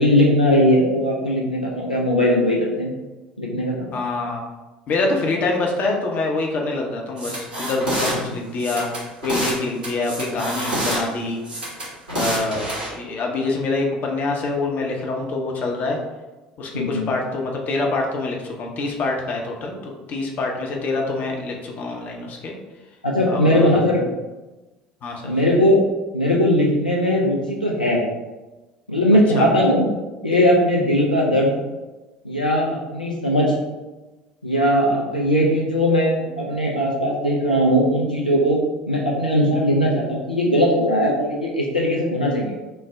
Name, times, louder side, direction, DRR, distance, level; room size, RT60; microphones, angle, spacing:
voice 1, 0.0-2.9 3.4-3.9 12.1-12.2 16.7-17.0 23.0-24.0 25.2-25.9 26.1-28.0 28.9-29.9 30.2-31.5 32.2-33.5 34.4-38.6 38.9-42.5, equal, 90° left, -4 dB, 0.4 m, -19 dB
voice 2, 3.9-4.4 4.9-8.9 9.2-11.4 12.1-16.0 16.6-22.5 23.3-23.8 25.0-25.3 29.3-29.5, left 3 dB, 40° left, 0 dB, 0.6 m, -25 dB
sound 1, 7.2-8.1 8.6-9.6 9.8-11.0 11.4-12.9, right 1 dB, 75° right, 1.3 m, -27 dB
3.1 x 2.0 x 3.4 m, 1.1 s
figure-of-eight pair, 65°, 4 cm